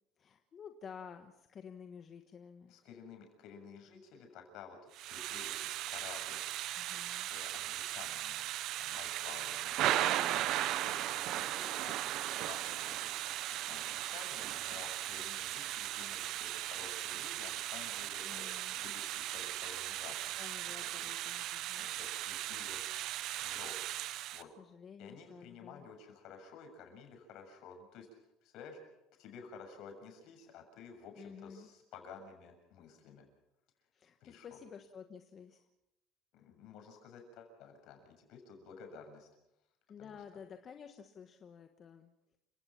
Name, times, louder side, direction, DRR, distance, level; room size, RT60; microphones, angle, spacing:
voice 1, 0.2-2.8 6.8-7.3 9.8-10.4 18.2-18.8 20.4-21.9 23.9-24.1 24.6-25.9 31.2-31.7 33.9-35.7 39.9-42.1, left 7 dB, 35° left, 6 dB, 1.3 m, -52 dB
voice 2, 2.7-8.5 8.8-12.2 12.5-18.5 18.7-21.2 21.8-22.8 23.4-23.8 24.2-24.5 25.0-28.1 28.4-28.8 29.2-33.3 34.2-34.5 36.3-39.3 40.0-40.2, left 5 dB, 65° left, 4 dB, 7.0 m, -53 dB
Thunder / Rain, 4.9-24.4, right 14 dB, 60° right, 0.9 m, -37 dB
29.5 x 17.0 x 6.0 m, 0.86 s
cardioid pair, 125°, 0 cm